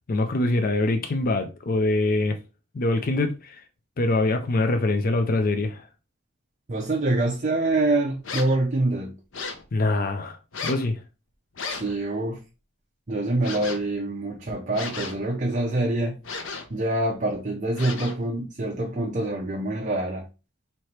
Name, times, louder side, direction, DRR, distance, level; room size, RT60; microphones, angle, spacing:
voice 1, 0.1-2.4 2.7-3.6 4.0-5.9 9.7-10.4 10.6-11.0, left 2 dB, 45° left, 0.5 m, -24 dB
voice 2, 6.7-9.1 11.7-12.4 13.1-16.2 16.7-20.3, right 2 dB, 40° right, 0.6 m, -25 dB
sound 1, 8.2-8.6 9.3-9.7 10.5-10.9 11.5-12.0 13.4-13.9 14.7-15.3 16.2-16.8 17.7-18.3, left 4 dB, 75° left, 0.8 m, -34 dB
3.2 x 2.9 x 4.3 m
head